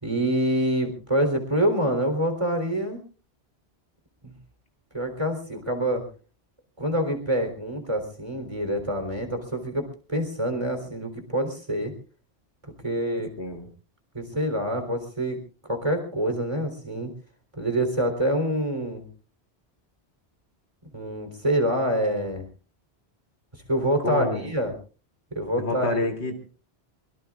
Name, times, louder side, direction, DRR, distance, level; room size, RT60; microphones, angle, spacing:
voice 1, 0.0-3.0 4.2-4.3 4.9-6.0 6.8-11.9 12.8-13.3 14.1-15.4 15.6-17.1 17.6-19.1 20.9-22.4 23.5-24.7 25.3-26.1, equal, 30° right, 6 dB, 3.8 m, -26 dB
voice 2, 24.0-24.5 25.6-26.4, left 2 dB, 85° left, 4 dB, 3.2 m, -27 dB
23.5 x 23.0 x 2.5 m, 0.39 s
omnidirectional pair, 1.1 m